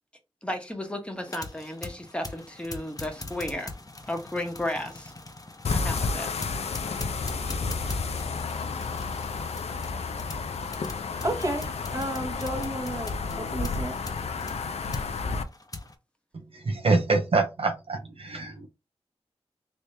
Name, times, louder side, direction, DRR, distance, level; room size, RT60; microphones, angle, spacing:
voice 1, 0.4-3.7 4.1-5.1 5.7-6.3, left 1 dB, 10° left, 1.2 m, -33 dB
sound 1, 1.2-15.9, left 2 dB, 35° left, 0.9 m, -42 dB
sound 2, 5.6-15.4, left 4 dB, 70° left, 0.5 m, -31 dB
voice 2, 10.9-13.1 13.4-14.0, right 1 dB, 30° right, 1.4 m, -32 dB
voice 3, 16.7-18.7, right 3 dB, 60° right, 0.8 m, -25 dB
3.3 x 3.1 x 2.8 m
cardioid pair, 40°, 11 cm